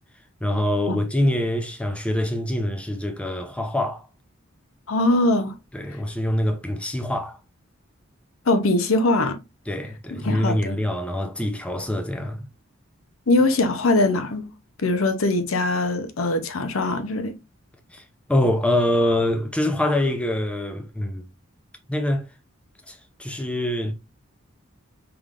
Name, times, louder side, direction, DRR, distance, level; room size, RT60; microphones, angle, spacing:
voice 1, 0.4-4.1 5.7-7.4 9.7-12.4 17.9-18.0 18.3-21.2 21.9-22.2 22.9-23.9, left 1 dB, 5° left, 0.6 m, -24 dB
voice 2, 4.9-5.5 8.5-9.4 10.1-10.8 13.3-14.5 14.8-17.3, left 2 dB, 85° left, 0.7 m, -22 dB
4.8 x 3.6 x 2.4 m
head